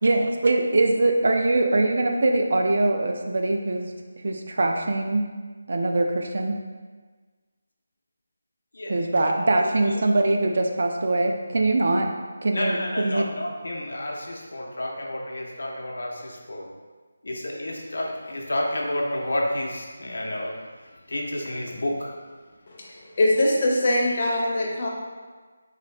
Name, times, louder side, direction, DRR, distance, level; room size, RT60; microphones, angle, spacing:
voice 1, 0.0-3.9 4.2-5.2 5.7-6.5 8.9-12.1 12.4-13.2, right 2 dB, 50° right, 3 dB, 0.3 m, -22 dB
voice 2, 8.7-9.1 9.6-10.0 12.5-16.7 17.2-22.2, left 1 dB, 75° left, 0 dB, 0.6 m, -30 dB
voice 3, 22.7-24.9, left 1 dB, 30° left, -2 dB, 0.5 m, -23 dB
3.9 x 2.6 x 3.2 m, 1.4 s
figure-of-eight pair, 175°, 0 cm